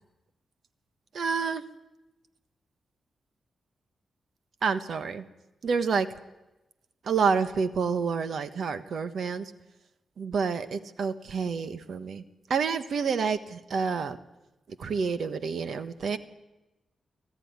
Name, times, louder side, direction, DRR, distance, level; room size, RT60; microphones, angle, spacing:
voice 1, 1.1-1.6 4.6-5.2 5.6-6.1 7.0-9.5 10.2-12.2 12.5-14.2 14.8-16.2, right 5 dB, 65° right, 12 dB, 1.3 m, -28 dB
25.5 x 14.5 x 9.6 m, 1.0 s
cardioid pair, 105°, 0 cm